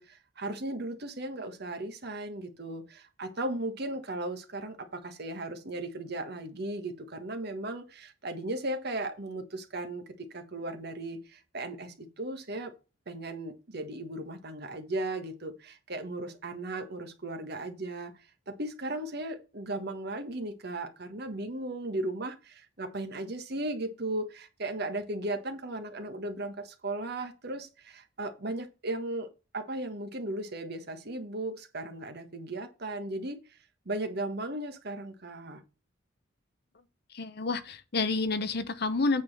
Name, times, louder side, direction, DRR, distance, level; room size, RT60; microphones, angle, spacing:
voice 1, 0.0-12.7 13.1-18.1 18.5-33.6 33.8-35.6, right 2 dB, 55° right, 1.5 m, -36 dB
voice 2, 37.1-39.2, left 3 dB, 55° left, 0.9 m, -29 dB
8.7 x 4.0 x 6.6 m
head